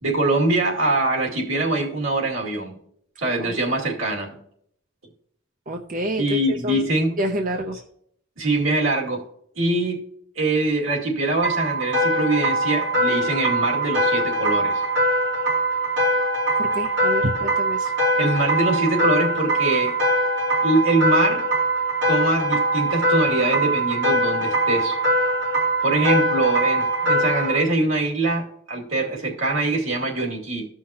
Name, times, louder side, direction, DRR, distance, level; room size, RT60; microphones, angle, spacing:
voice 1, 0.0-2.7 3.2-4.4 6.2-7.1 8.4-9.2 9.6-10.0 10.4-14.8 18.2-19.9 20.6-21.4 22.1-25.0 25.8-30.7, right 2 dB, 85° right, -1 dB, 2.4 m, -23 dB
voice 2, 5.7-6.4 6.6-6.9 7.2-7.8 16.6-17.9, equal, 40° right, 4 dB, 0.6 m, -27 dB
sound 1, 11.4-27.6, right 1 dB, 55° right, 2.8 m, -22 dB
14.5 x 5.7 x 2.9 m, 0.68 s
head